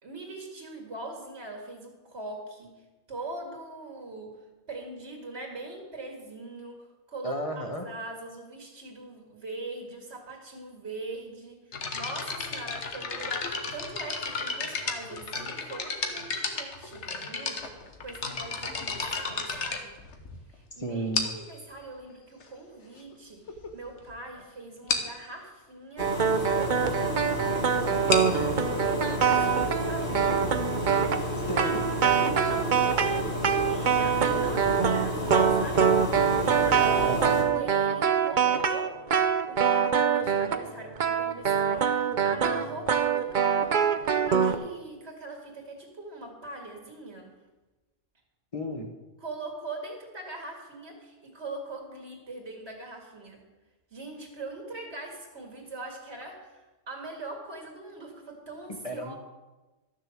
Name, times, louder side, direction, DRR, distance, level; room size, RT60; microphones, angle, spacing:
voice 1, 0.0-2.7 3.1-4.3 4.7-20.0 20.5-26.1 26.4-30.2 32.2-35.9 36.3-37.1 37.5-43.9 44.2-47.4 49.2-53.4 53.9-59.1, right 2 dB, 80° right, 1 dB, 2.3 m, -42 dB
voice 2, 7.2-7.8 20.8-21.3 31.4-31.8 37.0-37.4 48.5-48.9 58.8-59.1, equal, 30° left, 4 dB, 1.5 m, -33 dB
sound 1, 11.7-20.5 21.1-21.6 22.4-22.5 23.1-23.2 23.5-23.7 24.0-24.1 24.4-24.5 24.9-25.2 27.9-31.3, left 4 dB, 90° left, 1.5 m, -34 dB
sound 2, 26.0-37.4, left 1 dB, 50° left, 2.9 m, -31 dB
sound 3, 26.0-40.7 41.0-44.6, right 7 dB, 50° right, 0.8 m, -24 dB
12.5 x 6.9 x 7.6 m, 1.1 s
omnidirectional pair, 1.1 m